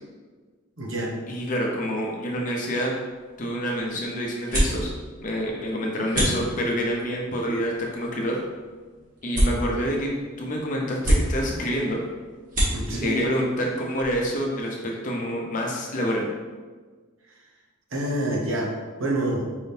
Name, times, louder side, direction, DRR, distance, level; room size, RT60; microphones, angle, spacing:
voice 1, 0.8-1.1 9.4-9.6 12.7-13.2 17.9-18.7 19.0-19.4, right 1 dB, 70° right, -2 dB, 1.0 m, -27 dB
voice 2, 1.3-2.9 3.4-4.9 5.2-8.4 9.2-12.0 12.9-16.3, equal, 40° left, -1 dB, 0.7 m, -27 dB
sound 1, 3.1-14.6, equal, 40° right, 1.3 m, -30 dB
4.7 x 3.6 x 2.7 m, 1.4 s
head